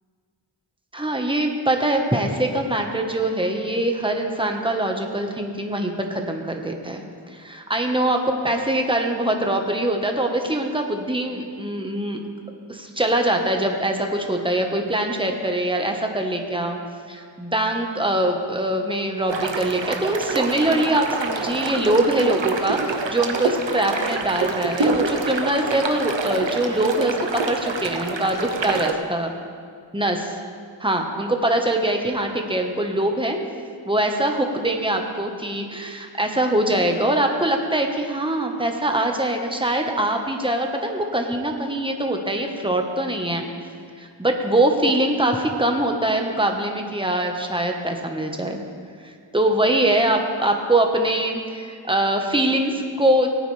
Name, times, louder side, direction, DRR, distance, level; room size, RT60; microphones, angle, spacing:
voice 1, 0.9-7.0 7.3-12.2 12.7-16.8 17.1-29.3 29.9-30.4 30.8-33.4 33.8-43.4 44.0-48.6 49.0-53.3, right 1 dB, 10° right, 3 dB, 1.3 m, -23 dB
sound 1, 19.3-28.9, right 3 dB, 70° right, 1.0 m, -26 dB
19.0 x 9.1 x 3.4 m, 2.2 s
wide cardioid pair, 45°, 46 cm